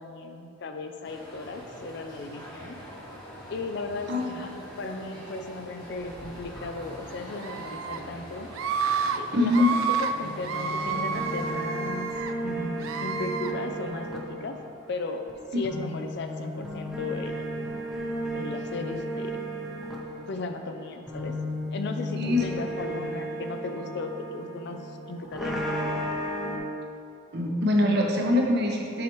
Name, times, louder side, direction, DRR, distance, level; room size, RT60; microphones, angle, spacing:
voice 1, 0.0-2.8 3.5-8.5 9.1-12.1 12.4-14.6 14.9-15.2 15.5-17.4 18.3-19.4 20.3-21.3 21.7-25.6, left 3 dB, 60° left, 6 dB, 0.4 m, -36 dB
sound 1, 1.0-11.5, equal, 20° left, 1.1 m, -44 dB
Screaming, 7.4-8.0 8.5-9.2 9.5-10.1 10.4-12.3 12.8-13.5, right 6 dB, 90° right, 0.3 m, -30 dB
voice 2, 9.3-9.7 15.5-15.6 22.2-22.4 27.3-29.0, left 1 dB, 55° right, 0 dB, 0.8 m, -23 dB
sound 2, 10.1-15.3 15.6-26.6, equal, ahead, 0.7 m, -34 dB
7.1 x 4.9 x 3.0 m, 2.5 s
head